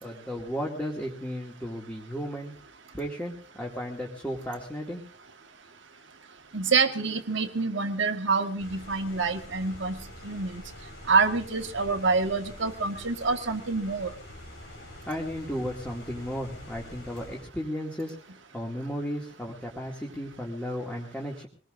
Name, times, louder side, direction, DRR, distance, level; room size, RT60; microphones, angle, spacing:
voice 1, 0.0-2.5 2.9-5.0 14.7-18.1 18.5-21.5, equal, 10° left, -2 dB, 2.4 m, -34 dB
voice 2, 6.5-10.6 11.1-14.1, right 4 dB, 65° right, 6 dB, 1.7 m, -27 dB
sound 1, 8.6-17.4, left 1 dB, 75° left, 4.5 m, -46 dB
24.5 x 20.0 x 2.6 m, 0.37 s
head